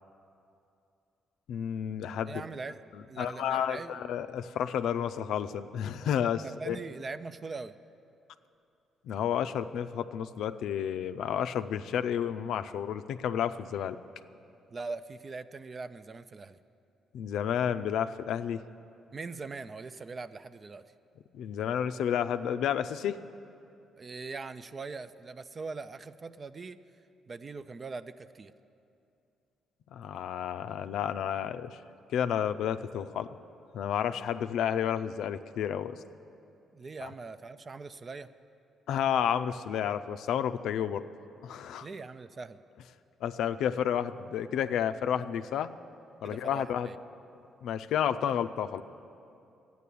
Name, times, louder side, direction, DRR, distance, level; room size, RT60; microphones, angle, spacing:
voice 1, 1.5-2.4 3.2-6.8 9.0-14.0 17.1-18.6 21.3-23.2 29.9-31.8 32.1-33.3 33.7-36.0 37.0-37.1 38.9-41.0 41.4-41.9 43.2-45.7 46.2-46.9 47.6-48.8, left 9 dB, 80° left, 10 dB, 0.4 m, -31 dB
voice 2, 2.3-4.0 6.4-7.7 14.7-16.6 19.1-20.8 24.0-26.8 27.3-28.5 36.7-38.3 41.8-42.6 46.2-47.0 48.2-48.3, right 4 dB, 35° right, 13 dB, 0.4 m, -41 dB
12.5 x 9.4 x 8.4 m, 2.6 s
cardioid pair, 90°, 0 cm